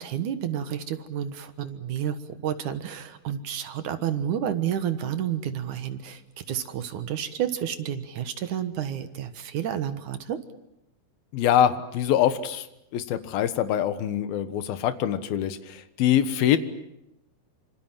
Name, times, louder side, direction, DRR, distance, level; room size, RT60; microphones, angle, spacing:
voice 1, 0.0-6.2 6.5-10.4, right 9 dB, 60° right, 10 dB, 2.6 m, -30 dB
voice 2, 11.3-12.7 12.9-16.6, left 10 dB, 80° left, 11 dB, 3.2 m, -24 dB
26.5 x 26.5 x 7.5 m, 0.81 s
omnidirectional pair, 4.3 m